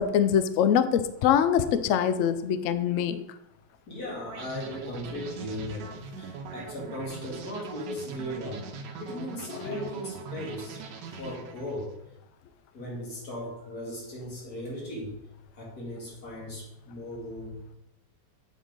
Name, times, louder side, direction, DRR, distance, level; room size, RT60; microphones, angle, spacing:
voice 1, 0.0-3.2 9.6-9.7, left 8 dB, 80° left, 12 dB, 0.7 m, -24 dB
voice 2, 3.9-10.8 11.2-11.9 12.7-15.2 15.5-17.8, left 1 dB, 60° left, -3 dB, 2.7 m, -37 dB
sound 1, 4.3-12.0, right 5 dB, 90° right, 1.4 m, -41 dB
7.6 x 4.5 x 5.0 m, 0.87 s
omnidirectional pair, 1.8 m